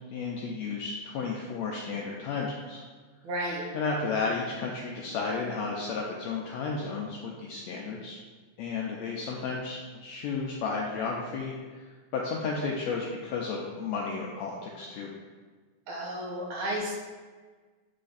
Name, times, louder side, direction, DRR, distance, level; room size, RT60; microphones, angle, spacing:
voice 1, 0.1-2.8 3.7-8.2 8.6-15.1, left 4 dB, 90° left, -2 dB, 1.5 m, -33 dB
voice 2, 3.2-3.6 15.9-16.9, right 1 dB, 75° right, -3 dB, 2.5 m, -32 dB
8.7 x 3.3 x 4.0 m, 1.4 s
omnidirectional pair, 3.7 m